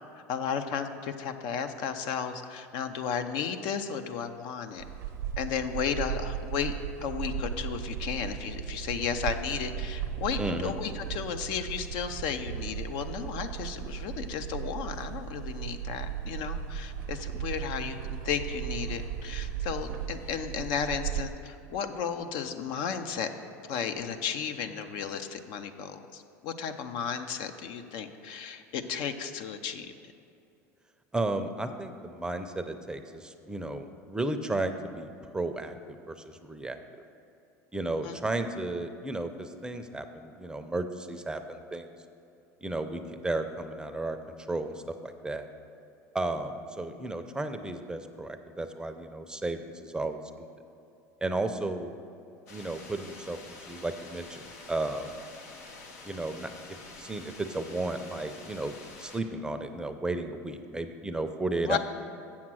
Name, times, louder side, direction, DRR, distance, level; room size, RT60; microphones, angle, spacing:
voice 1, 0.3-4.8 5.4-6.7 7.0-18.0 18.2-23.3 23.6-29.9 38.0-38.1 61.6-61.8, left 7 dB, 65° left, 8 dB, 0.6 m, -34 dB
sound 1, 4.8-21.3, right 9 dB, 80° right, 0.7 m, -36 dB
voice 2, 10.4-10.7 31.1-35.8 36.1-36.8 37.7-41.9 42.6-44.2 44.5-45.5 46.1-50.5 51.2-51.9 52.5-55.1 56.0-61.8, right 2 dB, 10° right, 7 dB, 0.5 m, -34 dB
sound 2, 52.5-59.2, left 3 dB, 90° left, 1.1 m, -48 dB
7.3 x 7.2 x 6.2 m, 2.6 s
supercardioid pair, 100°, 8 cm